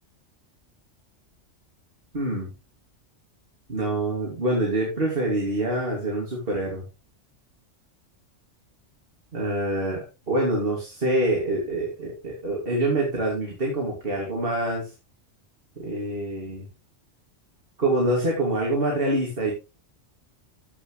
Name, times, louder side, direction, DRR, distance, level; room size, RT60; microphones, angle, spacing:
voice 1, 2.1-2.5 3.7-6.8 9.3-14.9 15.8-16.7 17.8-19.5, right 1 dB, 50° right, -2 dB, 3.0 m, -26 dB
15.0 x 6.2 x 3.3 m, 0.29 s
omnidirectional pair, 1.2 m